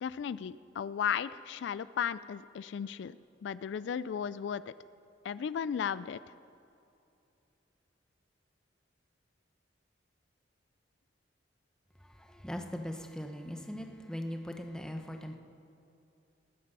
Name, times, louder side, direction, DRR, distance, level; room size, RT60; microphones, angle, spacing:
voice 1, 0.0-3.2 3.4-4.7 5.2-6.2, left 8 dB, 75° left, 17 dB, 0.3 m, -35 dB
voice 2, 12.2-15.4, equal, 5° left, 5 dB, 0.9 m, -40 dB
20.0 x 9.4 x 5.4 m, 2.7 s
head